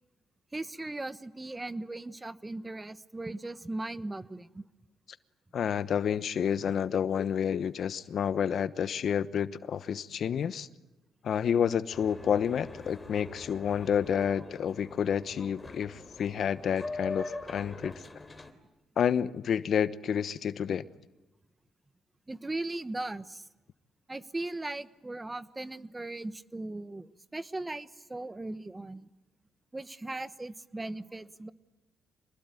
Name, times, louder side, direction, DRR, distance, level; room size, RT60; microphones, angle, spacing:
voice 1, 0.5-4.6 22.3-23.5 24.1-29.1 29.7-31.5, right 2 dB, 15° right, 1.1 m, -38 dB
voice 2, 5.5-10.7 11.2-17.9 19.0-20.9, left 8 dB, 60° left, 1.0 m, -29 dB
Boat Water vehicle, 11.9-18.5, left 3 dB, 20° left, 3.2 m, -43 dB
27.0 x 20.5 x 9.2 m
cardioid pair, 90°, 0 cm